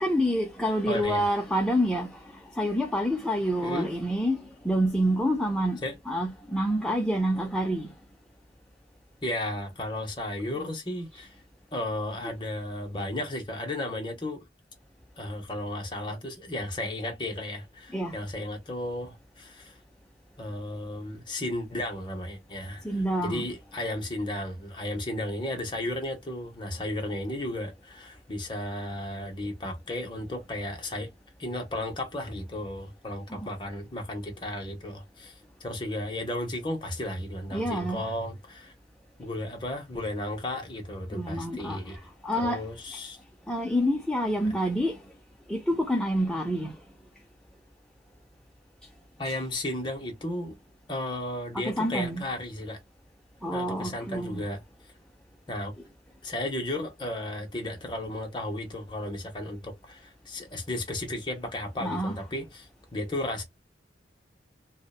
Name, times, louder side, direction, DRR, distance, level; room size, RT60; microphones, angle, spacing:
voice 1, 0.0-7.9 17.9-18.2 22.8-23.4 33.3-33.5 37.5-38.0 41.1-42.6 43.5-45.0 45.5-46.8 51.5-52.2 53.4-54.4 61.8-62.2, equal, 5° left, 0.3 m, -28 dB
voice 2, 0.8-1.2 3.6-3.9 5.8-5.9 9.2-11.3 11.7-14.4 15.2-19.8 20.4-31.1 31.4-38.7 39.2-42.0 42.4-43.2 49.2-50.6 50.9-52.8 53.5-54.6 55.5-55.7 56.2-63.4, left 1 dB, 25° left, 0.8 m, -34 dB
2.8 x 2.1 x 2.2 m
head